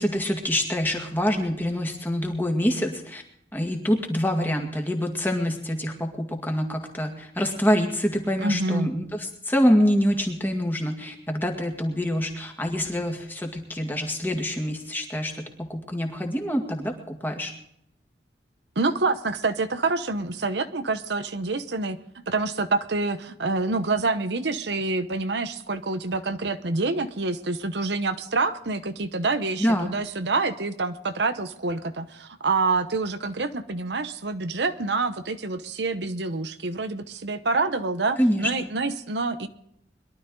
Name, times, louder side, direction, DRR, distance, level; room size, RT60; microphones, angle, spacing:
voice 1, 0.0-3.2 3.5-17.5 29.6-29.9 38.2-38.5, equal, 10° left, 2 dB, 2.0 m, -26 dB
voice 2, 8.4-8.9 18.8-22.0 22.3-39.5, right 3 dB, 75° right, 10 dB, 0.9 m, -27 dB
22.5 x 12.0 x 3.9 m, 0.73 s
head